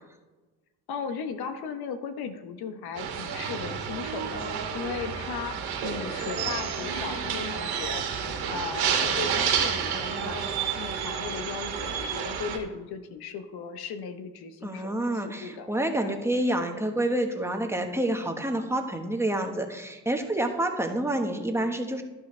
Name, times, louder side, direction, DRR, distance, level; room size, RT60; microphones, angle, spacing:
voice 1, 0.9-5.5 5.8-8.0 8.5-10.5 10.8-15.0 15.2-15.7 16.0-16.2, left 6 dB, 75° left, 8 dB, 1.1 m, -36 dB
sound 1, 3.0-12.6, right 7 dB, 80° right, 2.1 m, -30 dB
voice 2, 14.6-22.0, right 1 dB, 5° right, 3 dB, 1.3 m, -28 dB
11.5 x 9.7 x 3.3 m, 1.1 s
cardioid pair, 90°, 38 cm